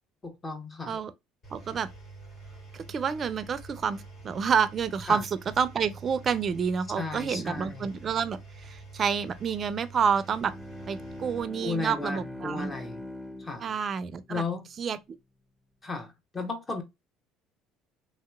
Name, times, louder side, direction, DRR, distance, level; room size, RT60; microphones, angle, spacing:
voice 1, 0.2-1.0 5.1-5.2 7.0-7.9 11.6-13.0 13.4-13.6 14.3-14.6 15.8-16.8, left 3 dB, 25° left, 1.0 m, -34 dB
Engine, 1.4-11.4, right 3 dB, 60° left, 2.0 m, -47 dB
voice 2, 1.5-1.9 2.7-10.5 10.9-12.7 13.6-14.4 14.8-15.0, right 6 dB, 45° right, 0.4 m, -29 dB
Bowed string instrument, 10.0-14.7, left 1 dB, ahead, 0.7 m, -43 dB
3.1 x 2.8 x 2.3 m
hypercardioid pair, 75°, 0 cm